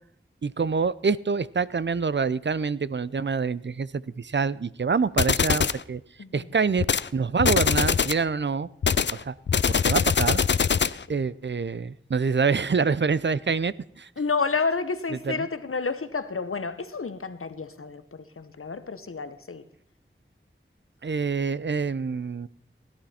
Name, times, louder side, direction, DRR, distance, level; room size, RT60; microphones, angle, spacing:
voice 1, 0.4-6.0 6.3-6.9 7.1-8.7 9.2-9.3 9.7-10.4 11.1-14.1 15.3-15.5 21.0-22.5, right 5 dB, 60° right, 18 dB, 0.5 m, -26 dB
sound 1, 5.2-5.8 6.8-7.1 7.4-8.2 8.8-11.0, left 6 dB, 60° left, 0.4 m, -22 dB
voice 2, 14.2-19.6, left 4 dB, 90° left, 12 dB, 0.9 m, -30 dB
17.5 x 11.5 x 4.3 m, 0.72 s
wide cardioid pair, 50°, 21 cm